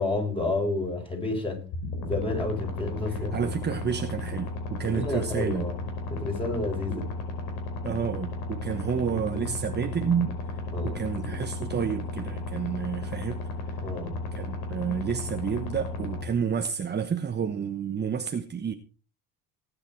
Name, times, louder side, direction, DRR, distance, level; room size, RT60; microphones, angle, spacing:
voice 1, 0.0-1.6 2.0-3.5 4.9-5.8 6.1-7.1 10.7-11.0 13.8-14.1, left 2 dB, 15° left, 6.6 m, -30 dB
sound 1, 1.7-16.2, left 2 dB, 75° left, 5.0 m, -34 dB
voice 2, 3.1-5.6 6.9-7.1 7.8-10.4 10.8-13.4 13.7-13.8 14.3-18.7, right 7 dB, 30° right, 1.2 m, -30 dB
18.0 x 10.5 x 4.7 m
cardioid pair, 130°, 37 cm